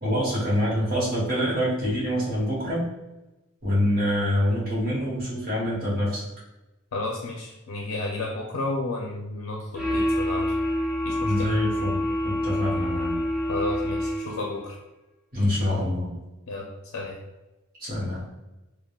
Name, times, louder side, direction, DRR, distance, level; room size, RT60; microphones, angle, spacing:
voice 1, 0.0-2.9 3.6-6.2 11.2-13.1 15.3-16.1 17.8-18.2, equal, 40° right, -8 dB, 1.2 m, -25 dB
voice 2, 6.9-10.4 11.0-11.5 13.5-14.8 16.5-17.1, left 2 dB, 70° left, -1 dB, 0.4 m, -32 dB
sound 1, 9.7-14.6, left 1 dB, 5° right, 0.4 m, -27 dB
3.5 x 2.3 x 2.3 m, 1.0 s
head